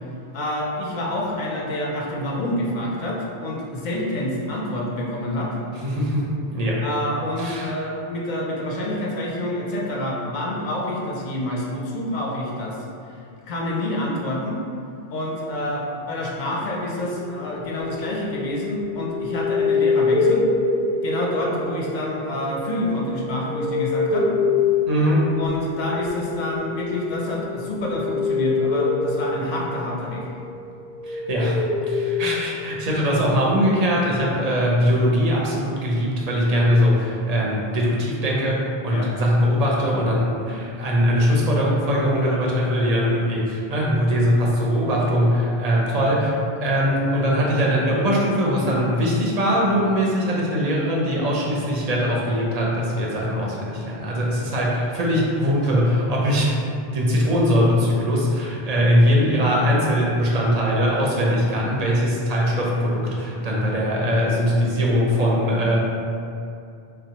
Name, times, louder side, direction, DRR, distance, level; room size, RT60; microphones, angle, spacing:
voice 1, 0.3-5.5 6.8-12.8 13.5-14.6 15.1-20.5 21.0-24.3 25.4-30.2 38.9-39.1 45.9-46.0, left 1 dB, 55° left, -3 dB, 0.6 m, -27 dB
voice 2, 5.8-6.3 6.5-6.8 7.4-7.7 24.9-25.2 31.0-56.6 56.9-65.8, equal, 50° right, -4 dB, 0.5 m, -21 dB
sound 1, 17.0-33.3 33.7-34.5, left 4 dB, ahead, 0.7 m, -26 dB
3.6 x 2.1 x 2.8 m, 2.5 s
omnidirectional pair, 1.0 m